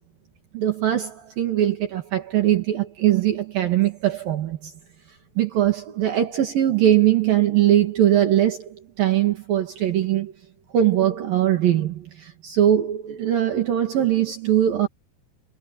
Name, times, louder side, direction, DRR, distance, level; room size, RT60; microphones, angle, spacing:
voice 1, 0.5-4.7 5.4-10.3 10.7-14.9, right 11 dB, 65° right, 3.8 m, -21 dB
omnidirectional pair, 4.5 m